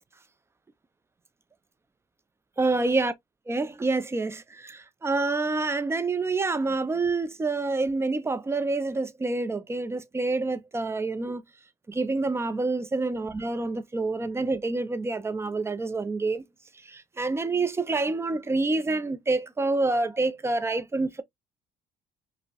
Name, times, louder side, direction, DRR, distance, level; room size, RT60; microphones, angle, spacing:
voice 1, 2.6-3.1 3.5-11.4 11.9-16.4 16.9-21.2, right 3 dB, 15° right, 0.5 m, -27 dB
5.1 x 2.1 x 2.2 m
cardioid pair, 110°, 17 cm